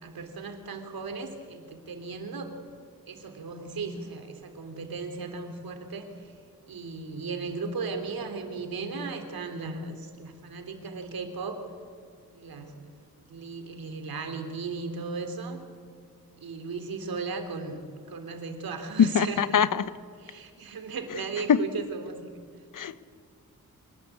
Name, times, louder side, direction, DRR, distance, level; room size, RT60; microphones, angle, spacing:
voice 1, 0.0-2.5 3.1-6.1 6.7-11.6 12.3-12.7 13.3-15.6 16.4-17.8 18.1-19.7 20.2-22.4, right 4 dB, 85° right, 3.6 m, -36 dB
voice 2, 19.0-19.7 21.5-21.6 22.8-23.0, left 7 dB, 65° left, 1.0 m, -21 dB
26.5 x 20.0 x 8.6 m
wide cardioid pair, 120°, 35 cm